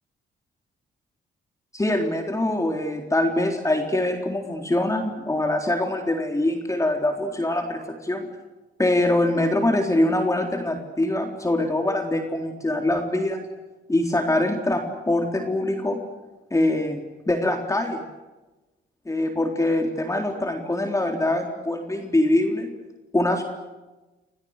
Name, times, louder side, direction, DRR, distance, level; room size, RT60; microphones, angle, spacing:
voice 1, 1.7-8.3 8.8-13.4 13.9-16.0 16.5-17.0 17.3-18.0 19.1-22.7 23.1-23.4, left 1 dB, 15° left, 3 dB, 3.8 m, -23 dB
29.5 x 27.0 x 6.6 m, 1.1 s
cardioid pair, 90°, 20 cm